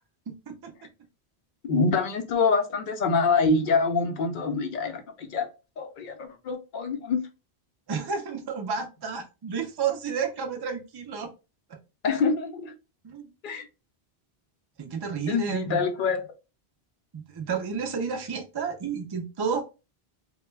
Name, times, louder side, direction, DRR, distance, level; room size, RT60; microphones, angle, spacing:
voice 1, 0.3-0.7 7.9-11.3 11.7-11.8 13.0-13.3 14.8-15.8 17.1-19.6, right 6 dB, 40° right, 0.3 m, -31 dB
voice 2, 1.7-5.5 5.8-7.2 12.0-12.7 13.4-13.7 15.3-16.3, left 4 dB, 60° left, 0.7 m, -25 dB
2.2 x 2.2 x 3.1 m
omnidirectional pair, 1.1 m